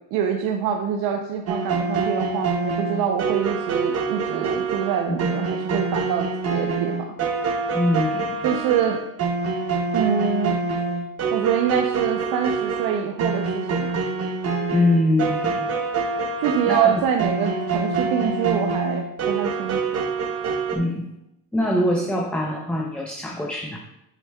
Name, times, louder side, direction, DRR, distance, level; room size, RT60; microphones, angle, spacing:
voice 1, 0.1-7.0 8.4-9.0 9.9-10.6 11.3-13.9 16.4-20.0, right 8 dB, 70° right, 3 dB, 0.7 m, -25 dB
sound 1, 1.5-20.8, right 4 dB, 40° right, 0.8 m, -26 dB
voice 2, 7.7-8.3 14.7-15.7 16.6-16.9 20.7-21.1 21.5-23.8, left 1 dB, 5° left, -1 dB, 0.6 m, -23 dB
7.3 x 6.8 x 2.3 m, 0.86 s
cardioid pair, 120°, 39 cm